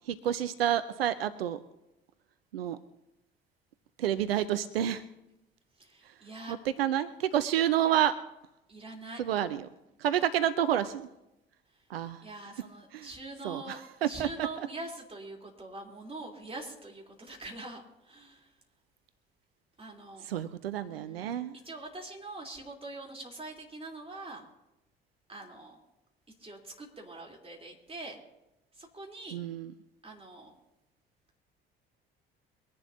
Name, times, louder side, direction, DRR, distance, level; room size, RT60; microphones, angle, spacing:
voice 1, 0.1-1.6 2.5-2.8 4.0-5.0 6.8-8.1 9.2-9.6 10.0-11.1 11.9-12.2 12.9-13.1 13.4-13.8 14.2-14.3 20.3-21.5 29.3-29.7, right 11 dB, 80° right, 13 dB, 0.6 m, -29 dB
voice 2, 5.8-6.6 8.7-9.2 12.2-18.5 19.8-20.3 20.9-21.4 21.6-24.4 25.3-25.8 26.4-28.2 28.7-29.4 30.0-30.5, right 2 dB, 20° right, 0 dB, 3.5 m, -44 dB
23.5 x 11.0 x 2.8 m, 0.93 s
figure-of-eight pair, 55°, 29 cm